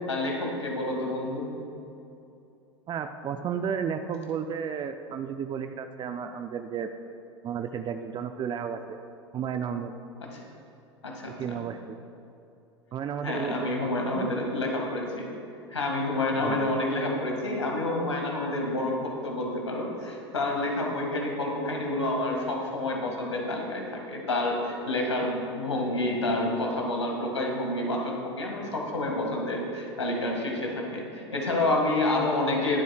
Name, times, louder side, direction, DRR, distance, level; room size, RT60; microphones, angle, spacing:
voice 1, 0.1-1.5 10.2-10.4 11.0-11.6 13.2-15.3 15.7-32.8, left 2 dB, 85° left, 0 dB, 2.0 m, -29 dB
voice 2, 2.9-6.9 7.4-9.0 9.3-9.9 11.4-12.0 12.9-13.7 14.1-14.3 16.4-16.7, right 7 dB, 30° right, 7 dB, 0.5 m, -33 dB
20.5 x 8.2 x 2.4 m, 2.7 s
figure-of-eight pair, 80°, 15 cm